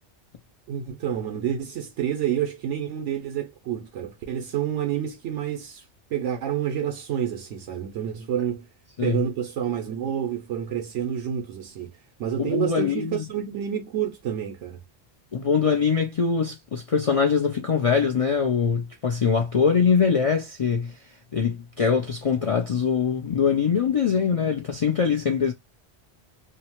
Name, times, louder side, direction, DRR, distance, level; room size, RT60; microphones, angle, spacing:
voice 1, 0.7-5.9 6.1-8.7 9.0-14.8, right 9 dB, 90° right, 0.9 m, -29 dB
voice 2, 12.4-13.3 15.3-25.5, left 6 dB, 60° left, 0.3 m, -23 dB
2.8 x 2.0 x 2.8 m
omnidirectional pair, 1.2 m